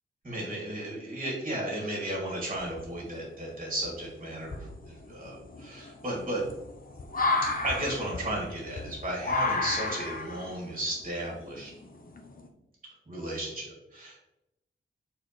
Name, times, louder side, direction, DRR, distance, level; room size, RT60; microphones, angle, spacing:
voice 1, 0.2-6.4 7.6-11.7 13.1-14.2, right 1 dB, 30° right, -4 dB, 2.5 m, -34 dB
sound 1, 2.6-3.2 3.8-3.9 4.4-12.5, left 3 dB, 40° left, 0.8 m, -32 dB
7.7 x 4.5 x 3.2 m, 0.86 s
wide cardioid pair, 105°, 21 cm